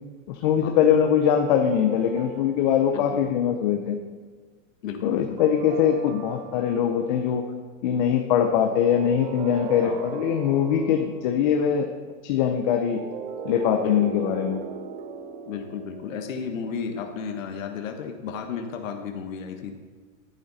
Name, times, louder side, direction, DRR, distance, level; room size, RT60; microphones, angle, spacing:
voice 1, 0.3-4.0 5.0-7.5 7.8-11.9 12.2-13.0 13.4-14.6, left 8 dB, 35° left, 5 dB, 0.7 m, -22 dB
sound 1, 1.2-3.7 5.4-7.2 8.6-11.3 12.7-17.2, right 6 dB, 35° right, 0.5 m, -38 dB
voice 2, 2.9-3.2 4.8-5.4 9.8-10.0 13.8-14.1 15.4-19.7, left 6 dB, 80° left, 4 dB, 1.4 m, -33 dB
11.0 x 9.1 x 4.1 m, 1.5 s
supercardioid pair, 165°, 39 cm